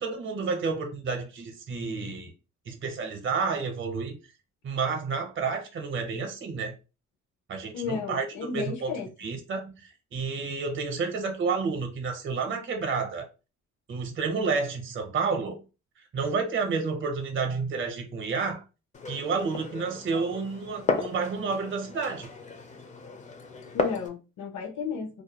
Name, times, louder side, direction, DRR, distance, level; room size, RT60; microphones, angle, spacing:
voice 1, 0.0-2.3 2.7-4.2 4.6-6.7 7.5-8.3 8.5-8.9 9.2-13.3 13.9-15.6 16.1-18.6 19.1-22.3, right 4 dB, 40° right, 0.7 m, -30 dB
voice 2, 7.7-9.1 23.7-25.2, left 5 dB, 70° left, 0.6 m, -33 dB
Glass, 18.9-24.1, left 4 dB, 25° left, 0.4 m, -34 dB
2.4 x 2.1 x 2.8 m
cardioid pair, 90°, 30 cm